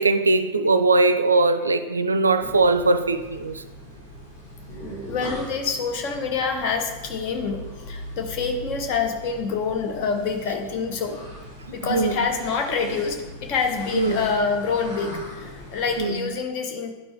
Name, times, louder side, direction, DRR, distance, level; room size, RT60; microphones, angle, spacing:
voice 1, 0.0-3.6 11.9-12.2 13.9-14.3 16.0-16.3, right 3 dB, 75° right, 10 dB, 0.4 m, -20 dB
sound 1, 2.4-16.0, equal, 75° left, 2.5 m, -40 dB
voice 2, 5.1-11.2 11.7-16.9, left 5 dB, 45° left, 4 dB, 1.0 m, -26 dB
11.0 x 4.4 x 3.2 m, 1.3 s
figure-of-eight pair, 90°, 0 cm